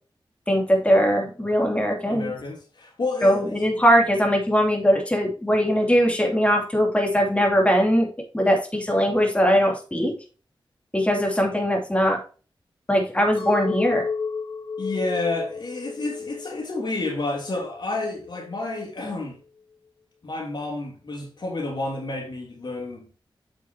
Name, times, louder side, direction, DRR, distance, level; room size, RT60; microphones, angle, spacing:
voice 1, 0.5-2.3 3.2-8.1 8.3-10.1 10.9-12.2 12.9-14.1, equal, 15° left, 2.9 m, -20 dB
voice 2, 2.1-3.7 14.8-19.4 20.2-23.1, left 2 dB, 60° left, 3.0 m, -30 dB
Chink clink, 13.4-17.7 18.1-18.7, left 5 dB, 85° left, 2.7 m, -32 dB
8.2 x 6.9 x 2.9 m
wide cardioid pair, 85°, 9 cm